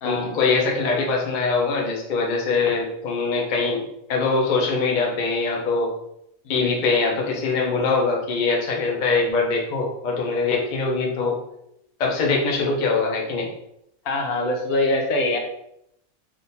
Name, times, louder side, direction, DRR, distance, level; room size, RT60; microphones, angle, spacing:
voice 1, 0.0-3.8 4.1-5.9 6.5-11.4 12.0-13.5, left 4 dB, 50° left, -1 dB, 0.5 m, -23 dB
voice 2, 14.0-15.4, left 2 dB, 80° left, 2 dB, 1.2 m, -24 dB
3.6 x 2.5 x 2.6 m, 0.78 s
omnidirectional pair, 1.6 m